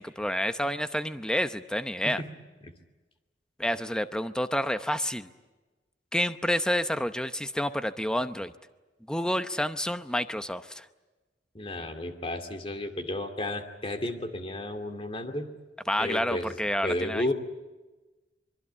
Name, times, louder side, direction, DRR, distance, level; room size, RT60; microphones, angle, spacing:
voice 1, 0.0-2.2 3.6-5.3 6.1-8.5 9.1-10.9 15.9-17.3, equal, 5° left, 10 dB, 0.8 m, -29 dB
voice 2, 11.5-15.5 16.0-16.6 16.8-17.3, left 1 dB, 30° left, 6 dB, 2.4 m, -33 dB
24.5 x 23.0 x 8.6 m, 1.2 s
head